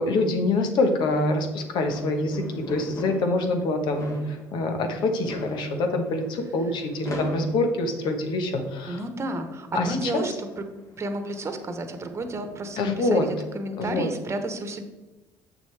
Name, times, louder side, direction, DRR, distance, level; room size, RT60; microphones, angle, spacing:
voice 1, 0.0-9.0 9.7-10.2 12.8-13.3 13.8-14.1, left 2 dB, 65° left, 5 dB, 1.2 m, -25 dB
sound 1, 1.1-13.8, left 2 dB, 40° left, 2.1 m, -42 dB
voice 2, 8.9-10.6 11.0-14.8, right 2 dB, 35° right, 7 dB, 1.1 m, -32 dB
7.4 x 6.3 x 3.4 m, 1.1 s
supercardioid pair, 75°, 8 cm